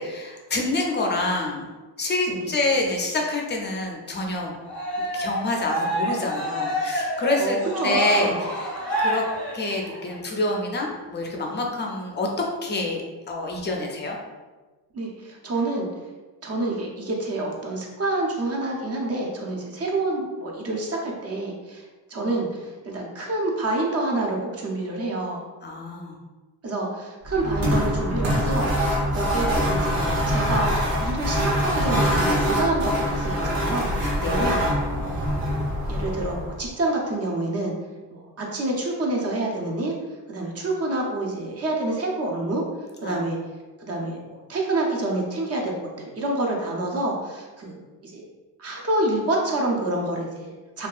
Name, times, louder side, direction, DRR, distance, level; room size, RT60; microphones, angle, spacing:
voice 1, 0.0-1.6 2.0-4.5 5.1-7.6 7.8-9.2 9.5-13.0 13.3-14.2 25.6-26.2 34.2-34.5 43.0-43.2, left 2 dB, 25° left, 0 dB, 0.4 m, -27 dB
Cheering, 4.7-10.1, right 1 dB, 5° left, 0.8 m, -27 dB
voice 2, 7.4-8.4 14.9-15.9 16.4-21.8 22.1-25.5 26.6-33.9 34.3-34.6 35.0-35.2 35.9-37.8 38.1-39.9 40.3-42.6 43.0-43.4 43.8-45.7 46.0-48.2 48.6-50.9, right 2 dB, 35° right, -1 dB, 0.5 m, -27 dB
sound 1, 27.2-36.6, equal, 85° right, 1.0 m, -24 dB
2.6 x 2.3 x 2.3 m, 1.3 s
cardioid pair, 110°, 44 cm